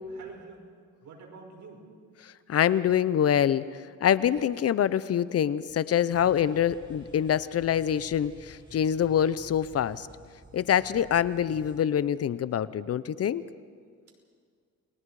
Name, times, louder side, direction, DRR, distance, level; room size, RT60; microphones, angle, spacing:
voice 1, 0.1-0.7 1.0-1.8 6.0-6.4, right 4 dB, 70° right, 1 dB, 5.5 m, -48 dB
voice 2, 2.2-10.1 10.5-13.4, left 9 dB, 55° left, 17 dB, 0.7 m, -25 dB
sound 1, 6.1-11.8, equal, 15° right, 4.6 m, -52 dB
29.0 x 21.0 x 4.9 m, 2.1 s
cardioid pair, 90°, 30 cm